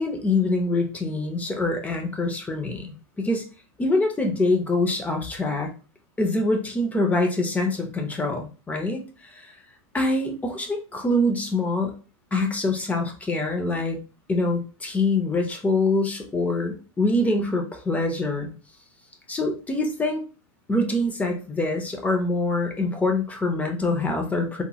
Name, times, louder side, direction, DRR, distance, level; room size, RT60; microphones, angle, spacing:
voice 1, 0.0-3.5 3.8-5.7 6.2-9.5 9.9-11.9 12.3-14.0 14.3-18.5 19.3-20.2 20.7-24.6, left 2 dB, 10° left, 3 dB, 0.4 m, -25 dB
2.9 x 2.8 x 2.3 m, 0.35 s
supercardioid pair, 145°, 18 cm